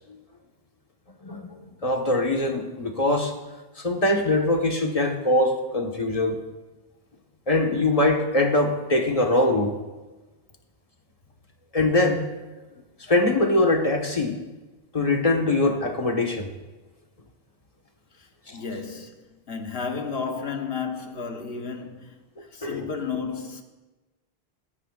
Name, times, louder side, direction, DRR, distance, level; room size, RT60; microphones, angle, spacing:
voice 1, 1.2-3.3 3.8-6.4 7.5-9.7 11.7-12.3 13.1-14.4 14.9-16.5 18.5-18.6 22.6-22.8, left 2 dB, 35° left, 1.6 m, -22 dB
voice 2, 18.1-23.6, left 5 dB, 70° left, 1.6 m, -33 dB
18.0 x 16.0 x 2.5 m
omnidirectional pair, 1.0 m